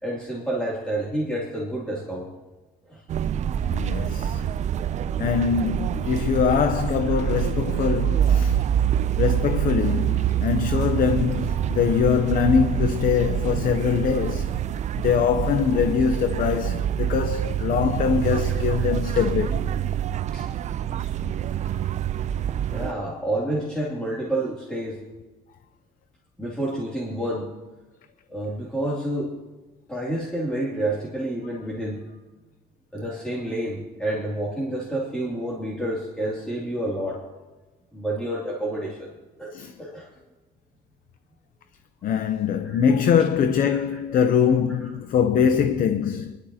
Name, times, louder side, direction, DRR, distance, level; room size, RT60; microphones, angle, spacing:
voice 1, 0.0-2.3 2.9-3.0 7.1-7.2 18.8-18.9 20.3-20.5 21.0-21.1 22.7-25.0 26.4-27.5 28.3-29.3 29.9-32.1 32.9-37.2 37.9-39.1 39.4-40.1 42.6-42.8 43.7-44.2 44.8-44.9, right 1 dB, 5° left, 2.7 m, -29 dB
sound 1, 3.1-22.9, right 10 dB, 45° right, 0.4 m, -26 dB
voice 2, 3.7-4.5 5.2-8.6 9.2-14.6 15.0-19.7 39.5-39.7 42.0-46.4, left 7 dB, 55° left, 0.7 m, -23 dB
20.5 x 12.0 x 2.9 m
cardioid pair, 110°, 17 cm